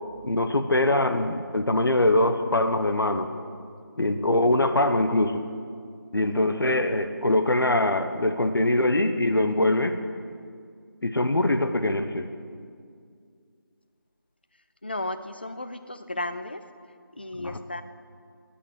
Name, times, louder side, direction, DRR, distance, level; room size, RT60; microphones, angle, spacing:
voice 1, 0.2-3.3 4.0-5.4 6.1-10.0 11.0-12.3 17.4-17.6, left 1 dB, 75° left, 8 dB, 1.0 m, -23 dB
voice 2, 14.8-16.6 17.1-17.8, left 1 dB, 25° left, 11 dB, 0.4 m, -34 dB
8.5 x 8.4 x 9.4 m, 2.2 s
figure-of-eight pair, 165°, 12 cm